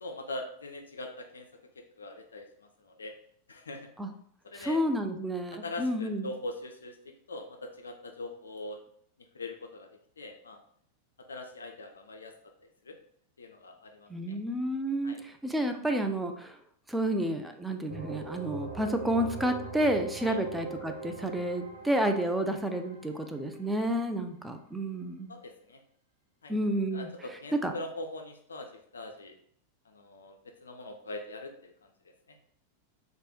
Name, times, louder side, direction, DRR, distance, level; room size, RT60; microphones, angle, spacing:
voice 1, 0.0-1.5 2.0-2.5 2.8-3.1 3.5-3.9 4.4-4.8 5.5-7.0 7.3-8.8 9.3-9.9 10.2-10.6 11.3-12.3 12.9-13.0 13.4-14.1 15.0-15.2 20.2-20.4 25.3-25.8 26.4-26.5 26.9-29.4 29.9-30.4 30.6-31.7 32.3-32.4, left 2 dB, 70° left, 4 dB, 0.3 m, -41 dB
voice 2, 4.5-6.3 14.1-16.6 16.9-25.3 26.5-27.1 27.5-27.7, right 1 dB, 5° right, 5 dB, 0.3 m, -30 dB
sound 1, 17.9-23.6, right 3 dB, 60° right, 0.7 m, -41 dB
3.1 x 2.1 x 2.8 m, 0.64 s
figure-of-eight pair, 90°, 0 cm